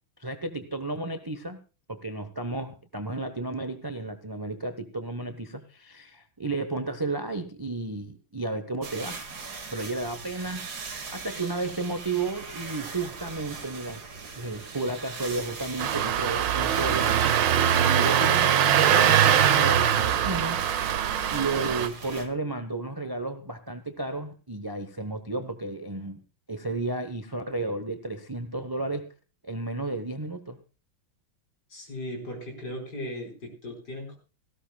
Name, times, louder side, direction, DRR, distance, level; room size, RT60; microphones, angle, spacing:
voice 1, 0.2-1.6 1.9-9.2 9.7-10.7 11.1-14.0 14.3-17.4 17.9-20.6 21.3-26.2 26.5-29.1 29.4-30.6, right 2 dB, 20° right, 9 dB, 0.6 m, -33 dB
texture styrofoam, 8.8-22.3, right 4 dB, 50° right, 2.4 m, -40 dB
Engine starting, 15.8-21.9, right 9 dB, 70° right, 1.5 m, -22 dB
voice 2, 31.7-34.2, left 1 dB, 50° left, 2 dB, 5.3 m, -37 dB
18.5 x 16.0 x 2.3 m, 0.33 s
omnidirectional pair, 2.3 m